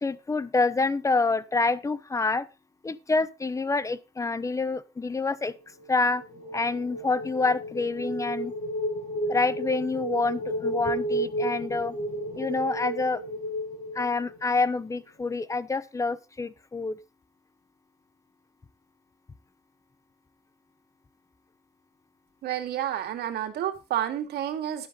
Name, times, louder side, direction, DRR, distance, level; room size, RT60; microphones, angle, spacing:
voice 1, 0.0-2.5 2.8-5.5 5.9-6.2 6.5-8.5 9.3-11.9 12.4-13.2 13.9-17.0, left 3 dB, 20° left, 0.8 m, -27 dB
sound 1, 5.8-14.7, right 1 dB, 60° left, 7.0 m, -32 dB
voice 2, 22.4-24.9, right 11 dB, 70° right, 2.4 m, -30 dB
12.0 x 10.5 x 3.9 m
cardioid pair, 110°, 17 cm